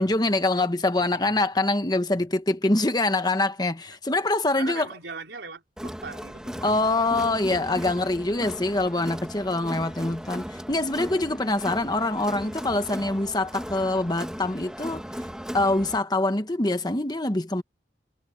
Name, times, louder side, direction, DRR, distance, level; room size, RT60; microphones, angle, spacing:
voice 1, 0.0-4.9 6.6-15.0 15.5-17.6, left 2 dB, 25° left, 1.3 m, -24 dB
voice 2, 4.6-7.1, right 4 dB, 80° right, 4.0 m, -41 dB
Crowd, 5.8-16.0, equal, 5° right, 1.9 m, -37 dB
head